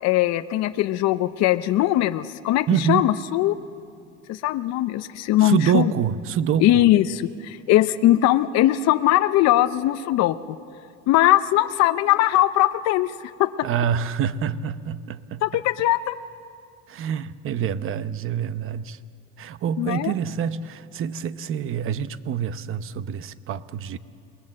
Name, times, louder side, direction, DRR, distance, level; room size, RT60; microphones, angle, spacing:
voice 1, 0.0-3.6 4.3-5.9 6.6-10.6 11.1-13.5 15.4-16.2 19.8-20.1, left 14 dB, 60° left, 10 dB, 0.7 m, -20 dB
voice 2, 2.7-3.1 5.4-6.8 13.6-15.4 16.9-19.0 19.4-24.0, right 8 dB, 45° right, 14 dB, 0.8 m, -26 dB
27.5 x 20.0 x 7.5 m, 2.4 s
cardioid pair, 125°, 29 cm